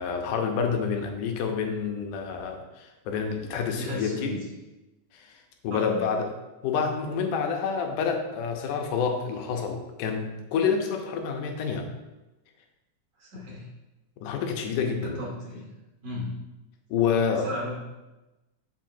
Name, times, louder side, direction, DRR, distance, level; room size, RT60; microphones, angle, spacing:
voice 1, 0.0-4.3 5.1-5.4 5.6-6.3 6.6-11.9 14.2-15.2 16.9-17.5, left 6 dB, 85° left, 4 dB, 2.3 m, -28 dB
voice 2, 3.8-4.4 5.7-6.0 13.2-13.6 15.0-15.7 16.0-16.3 17.4-17.7, equal, 60° right, -6 dB, 3.4 m, -35 dB
7.4 x 6.4 x 2.7 m, 1.0 s
omnidirectional pair, 3.5 m